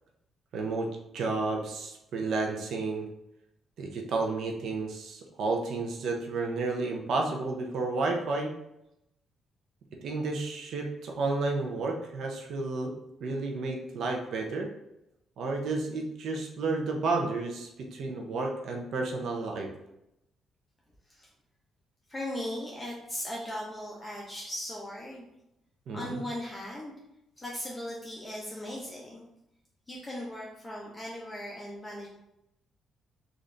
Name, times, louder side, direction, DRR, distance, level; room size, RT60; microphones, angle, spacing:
voice 1, 0.5-3.1 3.8-8.5 10.0-12.9 13.2-14.7 15.4-19.7 25.9-26.2, right 3 dB, 70° right, 1 dB, 0.6 m, -31 dB
voice 2, 22.1-25.3 25.9-26.9 27.4-29.2 29.9-32.1, left 1 dB, 20° left, -4 dB, 0.7 m, -38 dB
3.8 x 2.5 x 3.3 m, 0.85 s
cardioid pair, 90°, 0 cm